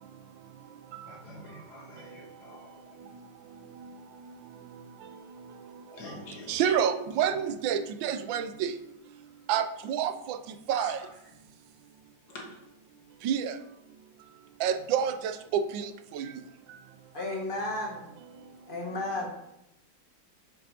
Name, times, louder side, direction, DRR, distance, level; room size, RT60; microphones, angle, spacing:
voice 1, 1.1-2.9 5.9-6.7 10.7-10.9 12.3-12.5, left 2 dB, 60° left, -1 dB, 2.0 m, -46 dB
voice 2, 6.5-8.7 9.5-10.4 10.7-11.0 13.2-13.5 14.6-16.3, right 8 dB, 85° right, 10 dB, 1.3 m, -28 dB
voice 3, 17.1-18.0 18.7-19.3, left 2 dB, 30° left, -1 dB, 1.3 m, -33 dB
7.5 x 6.5 x 2.8 m, 0.85 s
omnidirectional pair, 2.0 m